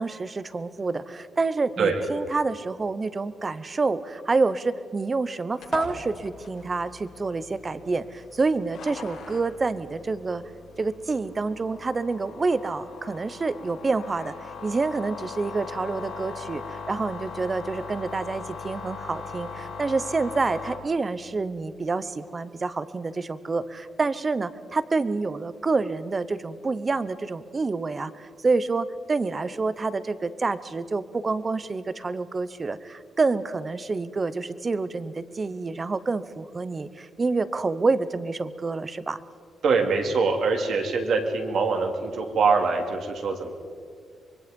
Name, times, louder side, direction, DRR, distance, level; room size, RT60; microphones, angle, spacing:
voice 1, 0.0-10.4 10.8-14.3 14.6-39.2, right 3 dB, 25° right, 15 dB, 0.8 m, -28 dB
sound 1, 5.6-20.7, left 4 dB, 85° left, 5.6 m, -40 dB
voice 2, 39.6-43.5, right 4 dB, 60° right, 3 dB, 2.9 m, -24 dB
25.0 x 22.0 x 5.3 m, 2.2 s
cardioid pair, 125°, 0 cm